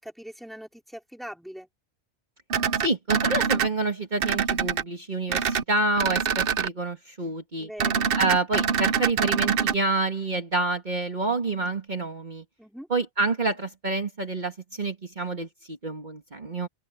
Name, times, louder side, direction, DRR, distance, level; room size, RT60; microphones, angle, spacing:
voice 1, 0.0-1.7 7.6-8.1 12.6-12.9, equal, ahead, 4.0 m, -41 dB
sound 1, 2.5-3.7 4.2-4.8 5.3-5.6 6.0-6.7 7.8-9.7, right 7 dB, 60° right, 0.9 m, -24 dB
voice 2, 2.8-7.7 8.2-12.4 12.9-16.7, right 2 dB, 40° right, 2.0 m, -28 dB
open air
omnidirectional pair, 1.2 m